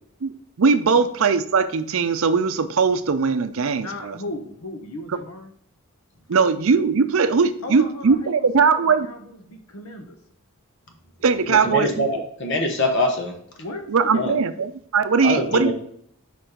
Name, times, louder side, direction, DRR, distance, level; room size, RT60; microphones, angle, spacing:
voice 1, 0.2-4.2 6.3-9.1 11.2-12.1 13.9-15.7, right 5 dB, 70° right, 11 dB, 0.5 m, -20 dB
voice 2, 3.8-5.5 7.6-10.2 13.6-14.5, left 2 dB, 80° left, 4 dB, 1.0 m, -36 dB
voice 3, 11.5-13.3 14.1-14.3 15.2-15.7, left 1 dB, 55° left, 3 dB, 1.2 m, -23 dB
5.1 x 4.6 x 5.0 m, 0.65 s
head